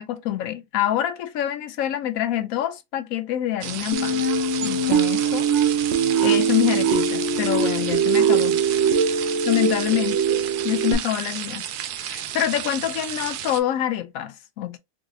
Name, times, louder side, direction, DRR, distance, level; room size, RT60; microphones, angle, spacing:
voice 1, 0.0-4.2 4.6-5.5 6.2-8.6 9.1-10.2 10.6-11.6 12.0-14.8, left 12 dB, 70° left, 1.0 m, -26 dB
sound 1, 3.6-13.6, right 10 dB, 80° right, 1.1 m, -32 dB
sound 2, 3.9-10.9, right 5 dB, 55° right, 0.9 m, -22 dB
3.9 x 2.7 x 2.6 m
omnidirectional pair, 1.6 m